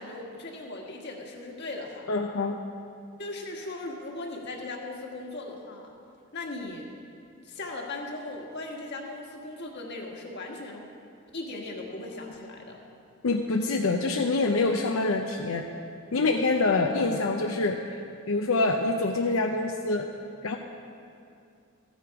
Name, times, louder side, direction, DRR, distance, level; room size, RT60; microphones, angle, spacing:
voice 1, 0.0-2.1 3.2-5.9 6.3-6.9 7.4-10.9 11.3-12.8, left 2 dB, 55° left, 0 dB, 1.5 m, -38 dB
voice 2, 2.1-2.6 13.2-15.6 16.1-20.1 20.4-20.6, left 3 dB, 85° left, 2 dB, 0.6 m, -26 dB
14.5 x 8.1 x 4.8 m, 2.5 s
head